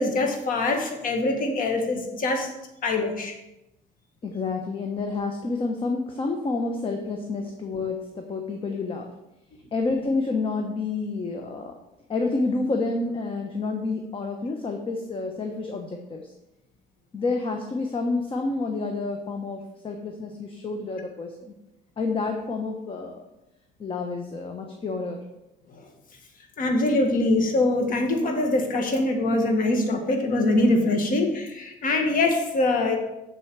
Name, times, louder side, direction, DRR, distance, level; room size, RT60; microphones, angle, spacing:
voice 1, 0.0-2.5 2.8-3.4 25.7-25.9 26.6-33.0, left 2 dB, 55° left, 4 dB, 1.8 m, -23 dB
voice 2, 4.2-9.1 9.7-11.8 12.1-16.3 17.1-21.5 22.0-23.2 23.8-25.2, left 3 dB, 30° left, 3 dB, 0.9 m, -29 dB
7.6 x 7.0 x 4.6 m, 0.92 s
cardioid pair, 110°, 17 cm